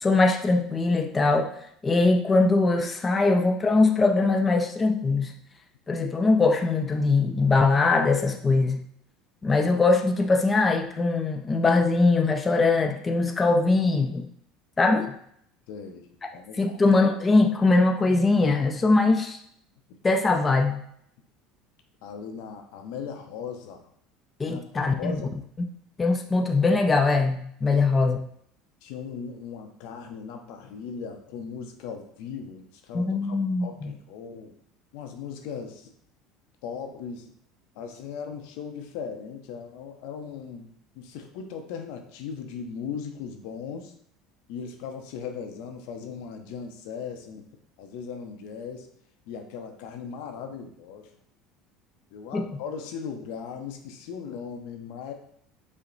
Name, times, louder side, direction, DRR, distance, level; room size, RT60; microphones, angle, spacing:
voice 1, 0.0-1.5 1.8-5.3 5.9-8.8 9.4-14.3 14.8-15.1 16.6-19.4 20.0-20.8 24.4-25.1 26.0-28.2 32.9-33.9 52.3-52.4, left 3 dB, 20° left, 4 dB, 0.5 m, -22 dB
voice 2, 15.7-16.8 22.0-23.9 24.4-25.3 27.6-27.9 28.8-34.6 34.9-35.9 36.6-37.3 37.7-40.7 40.9-43.9 44.5-47.4 47.8-48.9 49.3-51.1 52.1-55.1, left 6 dB, 75° left, 5 dB, 0.6 m, -38 dB
5.7 x 2.1 x 3.9 m, 0.68 s
supercardioid pair, 100°, 0 cm